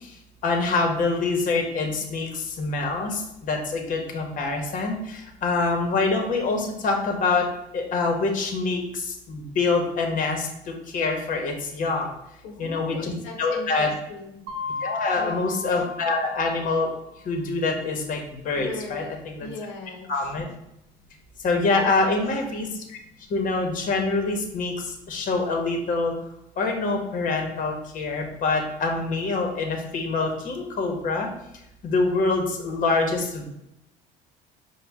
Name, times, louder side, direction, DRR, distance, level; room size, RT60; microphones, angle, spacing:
voice 1, 0.4-7.5 7.7-10.5 10.9-12.1 12.6-13.1 13.4-13.9 14.8-16.9 17.2-19.5 20.1-20.4 21.4-23.0 23.3-24.7 25.1-26.1 26.6-31.3 31.8-33.5, left 3 dB, 45° left, 3 dB, 0.9 m, -25 dB
voice 2, 12.4-14.4 15.1-15.8 18.5-20.3 21.8-22.4, left 3 dB, 90° left, 2 dB, 0.7 m, -39 dB
Mallet percussion, 14.5-17.1, left 4 dB, 60° right, 0.9 m, -35 dB
5.1 x 2.1 x 3.4 m, 0.82 s
cardioid pair, 105°, 20 cm